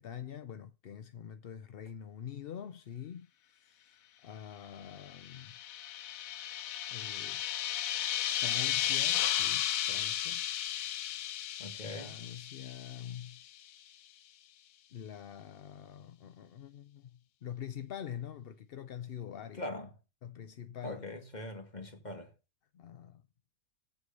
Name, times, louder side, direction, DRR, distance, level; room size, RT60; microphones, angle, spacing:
voice 1, 0.0-5.5 6.9-7.4 8.4-10.5 11.8-13.4 14.9-19.6 20.2-21.0 22.7-23.2, left 9 dB, 55° left, 0.7 m, -45 dB
sound 1, 5.1-13.4, left 11 dB, 80° left, 1.1 m, -34 dB
voice 2, 11.6-12.1 19.6-19.9 20.8-22.3, left 1 dB, 30° left, 2.0 m, -41 dB
8.0 x 7.9 x 6.7 m
omnidirectional pair, 1.4 m